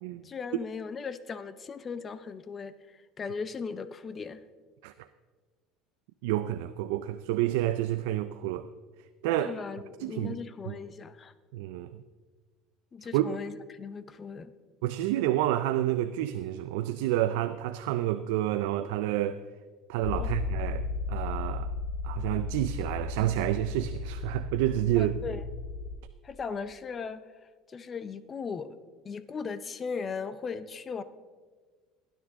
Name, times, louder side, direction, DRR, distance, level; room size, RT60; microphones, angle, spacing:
voice 1, 0.2-4.4 9.4-11.3 12.9-14.5 20.2-20.4 25.0-25.4 26.2-27.2 27.7-28.7 29.0-31.0, left 5 dB, 25° left, 0.6 m, -38 dB
voice 2, 6.2-8.7 9.2-9.6 10.0-10.4 10.7-10.8 11.5-12.0 13.1-13.4 14.8-19.4 19.9-21.7 22.0-25.1, right 14 dB, 85° right, 0.4 m, -29 dB
sound 1, 20.0-26.0, left 3 dB, 55° left, 1.6 m, -35 dB
18.5 x 10.0 x 3.7 m
cardioid pair, 130°, 0 cm